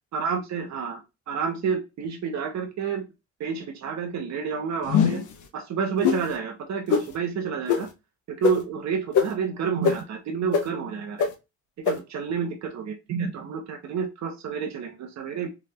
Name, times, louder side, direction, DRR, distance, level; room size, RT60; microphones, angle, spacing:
voice 1, 0.1-3.1 3.4-5.2 5.5-7.9 8.3-11.3 11.9-15.5, right 6 dB, 65° right, 3 dB, 1.0 m, -29 dB
sound 1, 4.9-5.3 6.0-6.2 6.9-7.0 7.7-7.8 8.4-8.5 9.1-9.2 9.8-9.9 10.5-10.6 11.2-11.3 11.9-12.0, left 7 dB, 80° left, 0.8 m, -20 dB
3.6 x 3.5 x 3.2 m, 0.25 s
cardioid pair, 90°, 30 cm